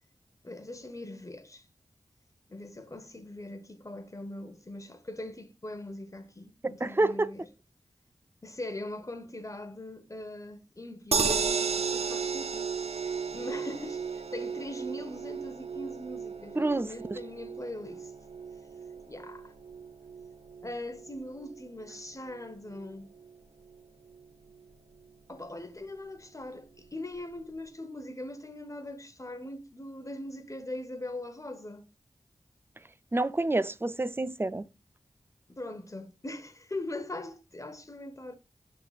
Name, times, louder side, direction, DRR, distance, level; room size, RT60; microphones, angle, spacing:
voice 1, 0.4-1.7 2.5-7.5 8.4-18.1 19.1-19.5 20.6-23.1 25.3-31.9 35.5-38.3, left 1 dB, 30° left, 1.1 m, -41 dB
voice 2, 6.6-7.3 16.6-17.2 33.1-34.7, right 2 dB, 20° right, 0.5 m, -28 dB
sound 1, 11.1-23.3 23.7-23.8 24.1-24.2, right 5 dB, 75° right, 0.9 m, -35 dB
11.5 x 4.0 x 2.4 m
cardioid pair, 45°, 11 cm